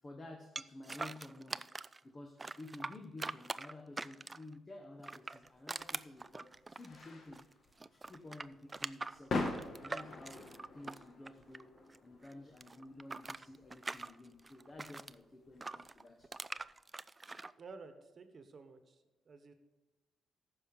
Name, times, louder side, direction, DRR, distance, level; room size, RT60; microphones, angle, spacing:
voice 1, 0.0-1.7 2.0-7.5 7.9-9.4 9.7-16.3, left 2 dB, 30° left, 1.2 m, -52 dB
sound 1, 0.6-2.0 2.4-4.5 5.0-7.5 7.8-12.0 12.2-15.1 15.6-17.5, right 3 dB, 25° right, 0.3 m, -43 dB
sound 2, 5.4-16.7, left 3 dB, 55° left, 1.6 m, -45 dB
voice 2, 17.6-19.5, right 4 dB, 50° right, 1.3 m, -53 dB
14.5 x 5.7 x 5.4 m
cardioid pair, 80°, 0 cm